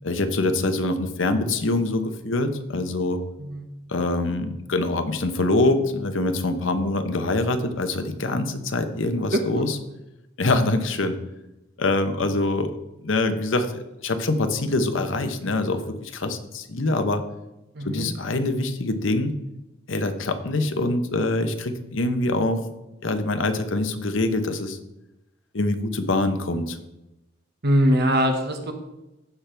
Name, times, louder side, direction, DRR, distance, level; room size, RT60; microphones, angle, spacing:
voice 1, 0.0-3.2 3.9-9.8 10.4-11.2 11.8-12.7 13.0-17.2 17.8-19.3 19.9-22.7 23.0-24.8 25.5-26.8, left 2 dB, 75° left, 8 dB, 1.0 m, -24 dB
voice 2, 9.3-9.7 17.7-18.1 27.6-28.7, equal, 55° right, 4 dB, 1.5 m, -22 dB
15.0 x 6.0 x 3.4 m, 0.96 s
head